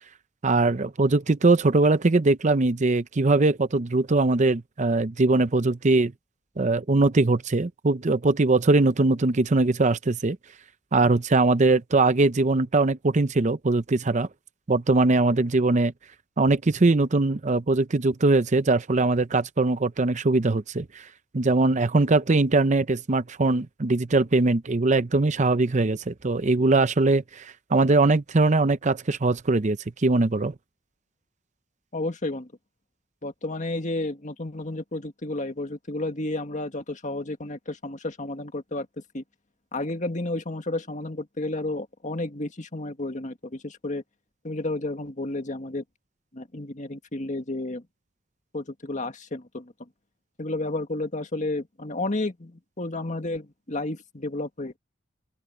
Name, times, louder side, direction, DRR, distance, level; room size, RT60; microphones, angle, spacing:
voice 1, 0.4-6.1 6.6-10.4 10.9-14.3 14.7-15.9 16.4-21.1 21.3-30.5, right 3 dB, 40° right, 0.7 m, -21 dB
voice 2, 31.9-32.5 33.2-38.9 39.1-39.2 39.7-44.0 44.4-45.8 46.3-47.8 48.5-49.7 50.4-54.8, left 2 dB, 40° left, 1.9 m, -31 dB
open air
head